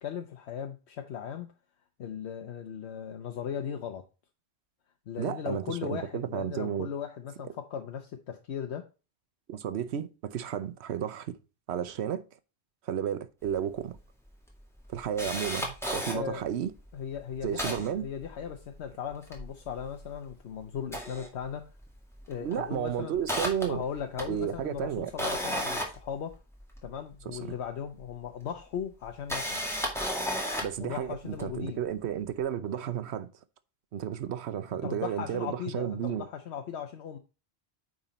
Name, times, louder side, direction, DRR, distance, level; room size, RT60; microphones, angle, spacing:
voice 1, 0.0-1.5 2.0-4.0 5.1-8.9 16.1-16.4 16.9-21.7 22.3-23.2 23.7-26.4 26.8-29.6 30.8-31.8 34.8-37.2, left 8 dB, 80° left, 1.0 m, -37 dB
voice 2, 5.2-6.9 9.5-11.3 11.7-12.2 12.9-14.0 14.9-16.7 17.4-18.0 22.4-23.8 24.3-25.1 27.3-27.4 30.6-33.3 33.9-36.2, right 9 dB, 85° right, 1.0 m, -32 dB
Camera, 13.6-13.7 13.9-14.0 14.5-16.2 16.8-16.9 17.1-18.8 19.1-20.3 20.8-21.9 22.2-22.5 22.9-26.9 28.0-28.1 29.0-30.8 31.4-31.5, equal, ahead, 2.0 m, -34 dB
9.0 x 3.9 x 4.1 m
omnidirectional pair, 1.1 m